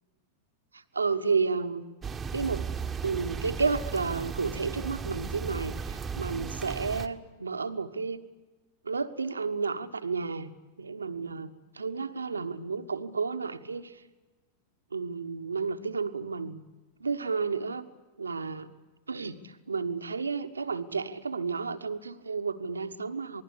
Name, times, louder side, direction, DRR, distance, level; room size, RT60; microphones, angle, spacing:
voice 1, 0.7-1.8 2.3-2.7 3.0-8.2 8.8-10.5 10.8-14.0 14.9-16.6 17.0-17.9 18.2-18.7 19.1-23.4, right 4 dB, 75° right, 9 dB, 1.3 m, -32 dB
sound 1, 2.0-7.1, right 5 dB, 15° right, 1.4 m, -36 dB
27.5 x 20.5 x 8.7 m, 1.2 s
figure-of-eight pair, 90°, 0 cm